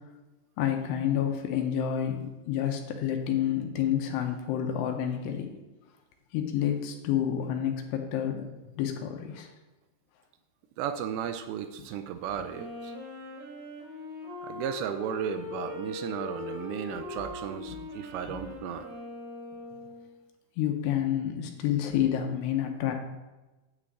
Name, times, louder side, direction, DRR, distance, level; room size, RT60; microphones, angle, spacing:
voice 1, 0.6-5.5 6.3-9.5 11.8-11.9 17.7-17.8 18.3-18.4 20.6-22.9, left 10 dB, 80° left, 4 dB, 2.8 m, -29 dB
voice 2, 10.8-12.9 14.4-18.8, right 9 dB, 80° right, 8 dB, 2.6 m, -35 dB
Wind instrument woodwind instrument, 12.5-20.2, left 3 dB, 60° right, 4.7 m, -41 dB
9.8 x 8.0 x 3.7 m, 1.1 s
omnidirectional pair, 5.2 m